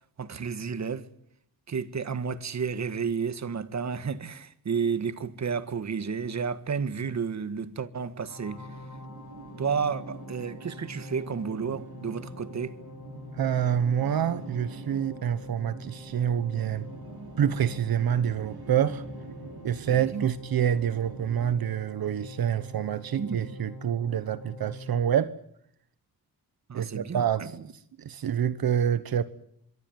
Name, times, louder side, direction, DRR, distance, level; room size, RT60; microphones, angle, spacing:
voice 1, 0.2-1.1 1.7-8.6 9.6-12.8 19.9-20.3 23.2-23.6 26.7-27.2, right 6 dB, 50° right, 1.8 m, -31 dB
sound 1, 8.3-25.1, left 1 dB, 60° left, 6.7 m, -45 dB
sound 2, 8.4-21.6, right 3 dB, 85° right, 6.7 m, -46 dB
voice 2, 13.3-16.9 17.4-19.0 19.6-25.4 26.7-29.2, right 9 dB, 70° right, 1.2 m, -27 dB
25.0 x 23.5 x 9.5 m
wide cardioid pair, 120°, 37 cm